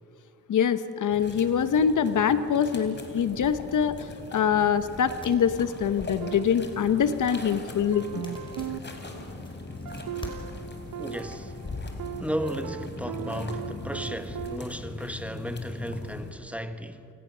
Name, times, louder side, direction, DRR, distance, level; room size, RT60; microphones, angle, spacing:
voice 1, 0.5-4.0 4.3-8.2, left 7 dB, 60° left, 1.0 m, -24 dB
sound 1, 1.1-16.3, left 3 dB, 30° left, 3.3 m, -40 dB
sound 2, 4.6-12.2, equal, 15° left, 4.8 m, -48 dB
sound 3, 6.2-7.5 7.9-14.6, right 8 dB, 70° right, 1.0 m, -39 dB
voice 2, 11.0-11.5 12.2-17.1, equal, 5° right, 1.4 m, -35 dB
28.5 x 17.5 x 6.2 m
cardioid pair, 80°, 33 cm